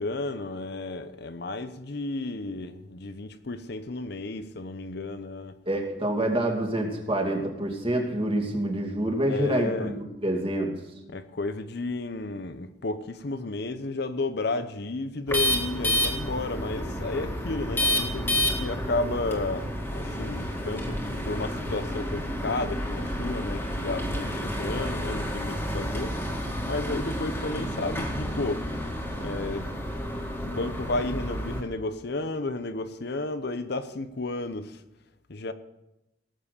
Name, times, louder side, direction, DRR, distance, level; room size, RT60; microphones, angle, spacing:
voice 1, 0.0-5.6 9.2-9.9 11.1-26.3 26.7-28.6 29.2-29.7 30.4-34.8 35.3-35.5, left 2 dB, 60° left, 0.8 m, -32 dB
voice 2, 5.7-10.7, right 1 dB, 30° right, 2.6 m, -27 dB
sound 1, 15.3-31.6, equal, 10° left, 2.2 m, -30 dB
18.5 x 7.5 x 6.8 m
head